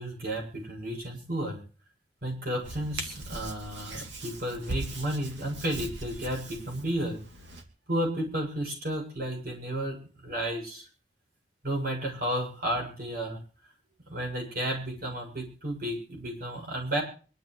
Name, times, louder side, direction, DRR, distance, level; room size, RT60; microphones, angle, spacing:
voice 1, 0.0-1.6 2.2-7.2 7.9-10.8 11.6-13.4 14.1-17.0, right 1 dB, 55° right, 1 dB, 7.0 m, -32 dB
Hands, 2.6-7.6, right 2 dB, 90° right, 2.8 m, -40 dB
24.5 x 12.0 x 3.2 m, 0.39 s
head